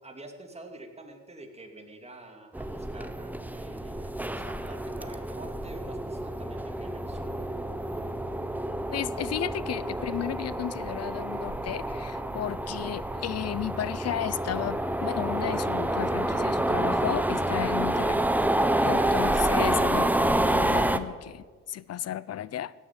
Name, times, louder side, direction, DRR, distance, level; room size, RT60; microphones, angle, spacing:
voice 1, 0.0-7.5, right 2 dB, 20° right, 4 dB, 2.9 m, -47 dB
sound 1, 2.5-21.0, right 1 dB, 5° right, 1.0 m, -28 dB
voice 2, 8.9-18.2 18.8-22.7, left 11 dB, 55° left, 19 dB, 0.7 m, -34 dB
16.0 x 9.5 x 8.8 m, 1.5 s
cardioid pair, 90°, 30 cm